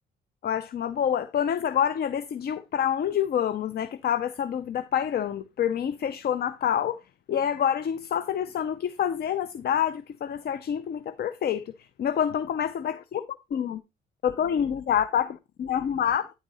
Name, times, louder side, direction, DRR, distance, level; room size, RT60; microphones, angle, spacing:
voice 1, 0.4-7.0 7.3-11.7 12.0-13.2 13.5-13.8 14.2-16.3, left 9 dB, 50° left, 0.5 m, -27 dB
10.0 x 3.9 x 4.0 m
cardioid pair, 90°, 20 cm